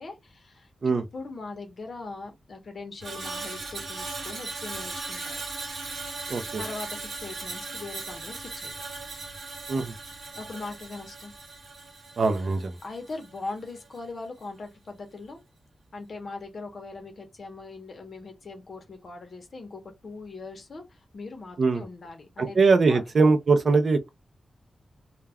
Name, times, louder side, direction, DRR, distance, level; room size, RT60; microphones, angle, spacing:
voice 1, 0.0-5.4 6.2-6.3 6.6-8.7 10.3-11.3 12.4-12.5 12.8-15.4 15.9-22.6 22.9-23.0, left 3 dB, 45° left, 0.7 m, -40 dB
Screech, 3.0-13.4 13.7-14.0, right 3 dB, 70° right, 0.9 m, -38 dB
voice 2, 6.3-6.6 9.7-9.9 12.2-12.8 21.6-21.8 22.4-24.1, right 4 dB, 50° right, 0.4 m, -22 dB
2.2 x 2.2 x 3.4 m
wide cardioid pair, 175°, 0 cm